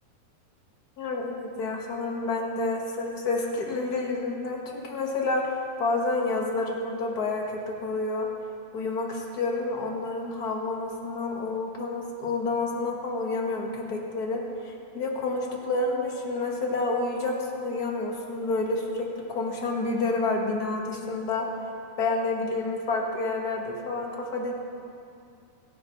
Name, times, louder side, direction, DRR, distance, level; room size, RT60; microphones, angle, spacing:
voice 1, 1.0-8.3 8.7-21.5 22.0-24.5, left 3 dB, 65° left, -1 dB, 0.9 m, -29 dB
23.5 x 10.5 x 3.1 m, 2.5 s
omnidirectional pair, 4.0 m